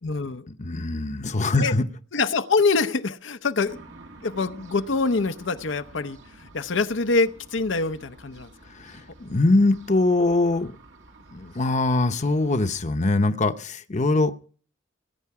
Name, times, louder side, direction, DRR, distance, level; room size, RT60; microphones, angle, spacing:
voice 1, 0.0-0.5 1.6-1.7 2.1-3.8 4.2-8.5, left 4 dB, 85° left, 0.8 m, -25 dB
voice 2, 0.6-1.8 8.6-10.7 11.3-14.3, left 2 dB, 40° left, 0.8 m, -22 dB
sound 1, 3.6-12.9, right 2 dB, 85° right, 2.2 m, -49 dB
20.5 x 9.4 x 4.8 m
head